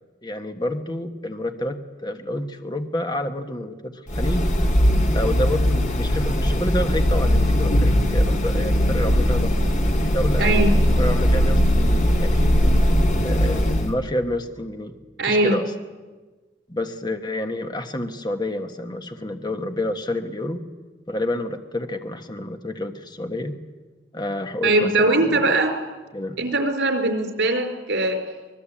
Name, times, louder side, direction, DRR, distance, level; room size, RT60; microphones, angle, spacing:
voice 1, 0.2-4.4 5.1-9.6 9.8-10.6 11.0-12.5 13.0-14.9 15.2-15.7 16.7-20.6 21.1-23.6 24.1-25.6 26.1-26.4, left 1 dB, 25° left, 6 dB, 1.4 m, -29 dB
sound 1, 4.1-13.9, equal, 45° left, 2.2 m, -19 dB
voice 2, 15.2-15.6 24.6-25.7 26.4-28.2, right 2 dB, 85° right, 6 dB, 4.1 m, -20 dB
25.0 x 20.0 x 8.7 m, 1.3 s
head